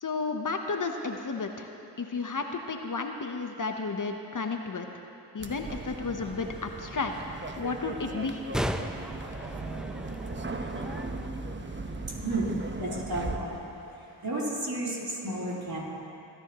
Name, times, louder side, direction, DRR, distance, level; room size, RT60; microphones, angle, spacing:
voice 1, 0.0-1.7 2.0-5.0 5.3-7.1 7.6-8.4, left 4 dB, 45° left, 4 dB, 1.0 m, -32 dB
sound 1, 5.4-13.4, right 2 dB, 25° right, 1.1 m, -37 dB
sound 2, 6.3-11.3, equal, ahead, 0.7 m, -38 dB
voice 2, 12.2-13.7 14.2-15.8, right 2 dB, 55° right, -5 dB, 3.7 m, -32 dB
25.5 x 10.5 x 3.1 m, 2.9 s
supercardioid pair, 40°, 44 cm